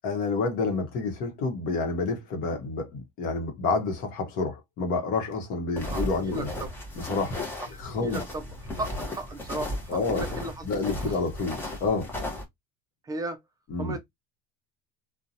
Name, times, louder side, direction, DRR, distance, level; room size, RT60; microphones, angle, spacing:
voice 1, 0.0-6.5 7.0-7.4 7.8-8.2 9.9-10.3 10.6-12.1 13.7-14.0, left 3 dB, 45° left, 0.9 m, -29 dB
sound 1, 5.7-12.4, left 1 dB, 10° left, 0.8 m, -35 dB
voice 2, 5.9-6.7 7.7-11.2 13.0-13.4 13.8-14.0, right 2 dB, 20° right, 0.4 m, -36 dB
2.7 x 2.2 x 2.6 m
cardioid pair, 145°, 19 cm